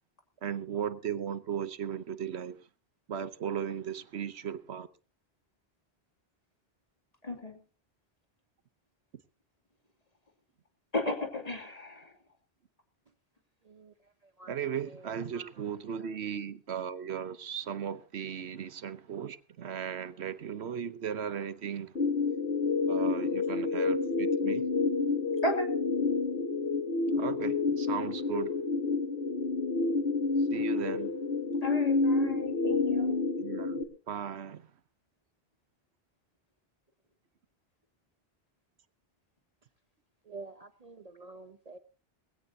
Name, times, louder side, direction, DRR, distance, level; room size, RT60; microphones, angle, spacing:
voice 1, 0.4-2.6 3.1-4.9 14.5-21.9 22.9-24.6 27.1-28.5 30.5-31.2 33.4-34.7, right 8 dB, 85° right, 1.2 m, -36 dB
voice 2, 7.2-7.6 10.9-12.1 25.4-25.7 31.6-33.2, left 1 dB, 35° left, 2.7 m, -34 dB
sound 1, 22.0-33.8, left 3 dB, 70° left, 1.8 m, -29 dB
voice 3, 40.3-41.8, right 3 dB, 40° right, 0.8 m, -48 dB
20.5 x 16.0 x 2.7 m
omnidirectional pair, 1.1 m